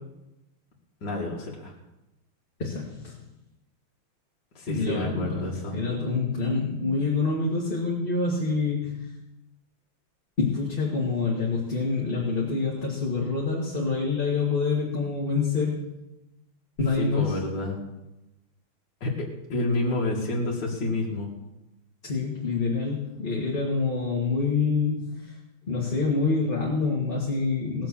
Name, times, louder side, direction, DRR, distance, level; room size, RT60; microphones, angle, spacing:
voice 1, 1.0-1.7 4.5-5.8 17.0-17.8 19.0-21.3, left 2 dB, 55° left, -4 dB, 2.6 m, -29 dB
voice 2, 2.6-3.2 4.7-9.2 10.4-15.8 16.8-17.4 22.0-25.4 25.7-27.9, left 4 dB, 25° left, -4 dB, 2.2 m, -26 dB
18.0 x 7.6 x 7.2 m, 0.96 s
omnidirectional pair, 2.3 m